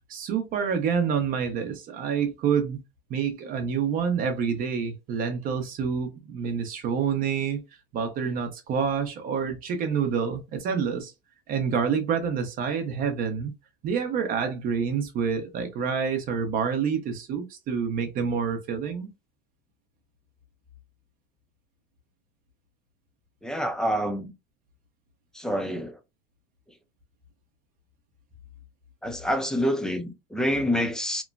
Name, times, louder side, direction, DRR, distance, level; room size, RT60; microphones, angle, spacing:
voice 1, 0.1-2.8 3.1-7.6 7.9-11.1 11.5-13.5 13.8-19.1, right 6 dB, 45° right, 0.6 m, -27 dB
voice 2, 23.4-24.3 25.3-26.0 29.0-31.2, equal, 5° left, 0.4 m, -27 dB
3.0 x 2.1 x 2.4 m
supercardioid pair, 130°, 21 cm